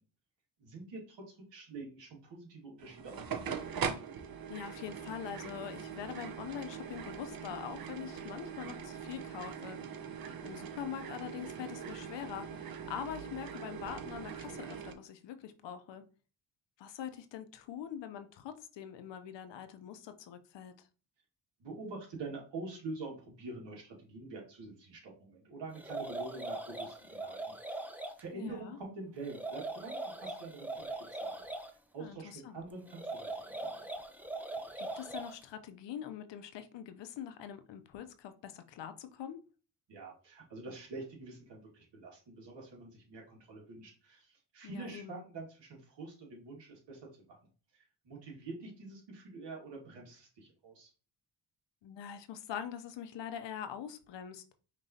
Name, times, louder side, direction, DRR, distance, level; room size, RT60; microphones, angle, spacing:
voice 1, 0.6-3.5 21.6-27.8 28.2-31.5 31.9-33.8 39.9-47.0 47.3-47.4 47.7-50.9, right 3 dB, 85° right, 1.9 m, -46 dB
sound 1, 2.8-14.9, right 7 dB, 55° right, 0.8 m, -42 dB
voice 2, 4.5-10.0 10.4-16.0 16.8-20.9 28.3-28.8 32.0-32.6 34.8-39.4 44.6-45.2 51.8-54.4, left 9 dB, 85° left, 0.7 m, -44 dB
sound 2, 25.7-28.2 29.2-31.7 32.9-35.4, right 2 dB, 5° right, 0.6 m, -41 dB
5.3 x 3.0 x 2.7 m
cardioid pair, 80°, 42 cm